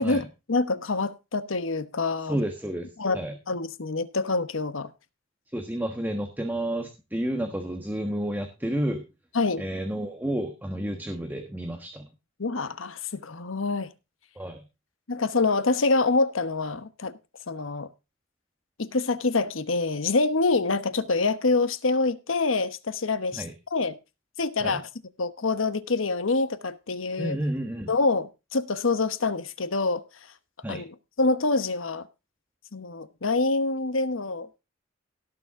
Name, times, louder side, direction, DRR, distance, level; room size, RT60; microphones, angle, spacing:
voice 1, 0.0-2.4 3.0-3.2 3.5-4.9 9.3-9.6 12.4-13.9 15.1-17.2 17.5-17.9 18.8-23.4 23.7-24.0 24.4-24.8 25.2-27.4 27.9-30.0 30.7-30.8 31.2-32.1 32.7-34.5, left 3 dB, 85° left, 1.1 m, -26 dB
voice 2, 2.3-2.9 3.1-3.4 5.5-9.0 9.6-12.1 14.4-14.6 23.3-23.5 24.6-24.8 27.2-27.9 30.6-30.8, right 1 dB, 10° right, 1.3 m, -30 dB
17.5 x 7.0 x 3.7 m
head